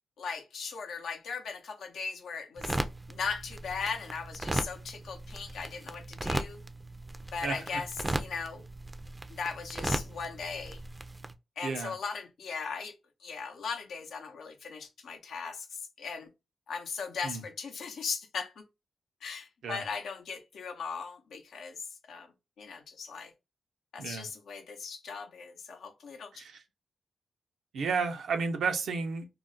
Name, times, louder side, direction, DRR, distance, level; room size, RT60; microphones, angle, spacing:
voice 1, 0.2-2.8 3.1-6.6 7.3-8.6 9.3-10.8 11.6-12.9 13.2-16.3 16.7-18.5 19.2-22.3 22.6-23.3 23.9-26.3, left 5 dB, 85° left, 0.6 m, -38 dB
sound 1, 2.6-11.3, right 2 dB, 20° right, 0.4 m, -37 dB
voice 2, 11.6-11.9 17.2-17.4 19.6-19.8 24.0-24.3 26.4-26.6 27.7-29.3, right 5 dB, 80° right, 0.5 m, -32 dB
2.4 x 2.0 x 3.7 m
cardioid pair, 60°, 0 cm